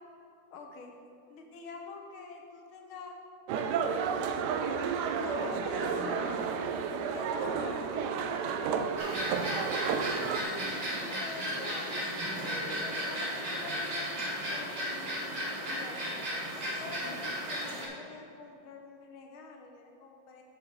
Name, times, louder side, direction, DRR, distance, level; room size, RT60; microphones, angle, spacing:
voice 1, 0.5-0.9 1.3-3.2 3.9-4.2 5.2-6.4 7.1-8.9 9.7-12.0 12.6-16.2 16.8-20.4, left 4 dB, 90° left, 2 dB, 1.9 m, -45 dB
sound 1, 3.5-10.4, right 6 dB, 75° right, 1.0 m, -31 dB
sound 2, 9.0-17.9, equal, 60° right, 2.3 m, -35 dB
8.8 x 6.8 x 4.7 m, 2.4 s
omnidirectional pair, 2.2 m